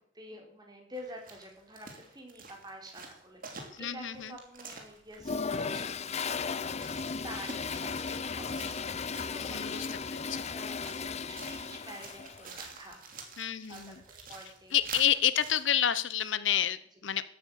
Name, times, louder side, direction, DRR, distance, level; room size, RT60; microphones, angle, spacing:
voice 1, 0.1-6.9 7.2-10.0 10.4-13.0 13.4-14.8, equal, 20° right, 1 dB, 3.9 m, -48 dB
sound 1, 0.9-15.6, right 4 dB, 45° right, 2.9 m, -49 dB
voice 2, 3.8-4.3 9.3-10.5 13.4-14.0 14.7-17.3, left 10 dB, 70° left, 15 dB, 0.8 m, -29 dB
Toilet flush, 5.2-12.5, left 5 dB, 35° left, 0.6 m, -36 dB
14.0 x 8.9 x 8.1 m, 0.65 s
head